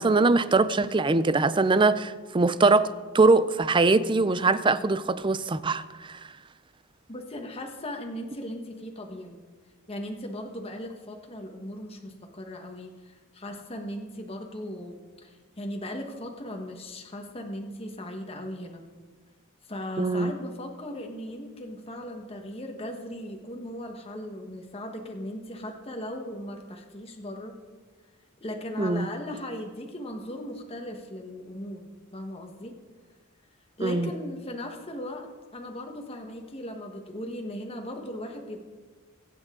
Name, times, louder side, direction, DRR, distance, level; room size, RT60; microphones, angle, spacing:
voice 1, 0.0-2.9 3.1-6.2 20.0-20.3 28.8-29.1 33.8-34.1, right 3 dB, 25° right, 0.5 m, -22 dB
voice 2, 7.1-9.4 9.9-15.0 15.2-18.8 19.7-27.6 28.4-31.8 32.1-32.8 33.8-38.6, left 1 dB, 30° left, 1.3 m, -38 dB
22.5 x 9.0 x 3.8 m
head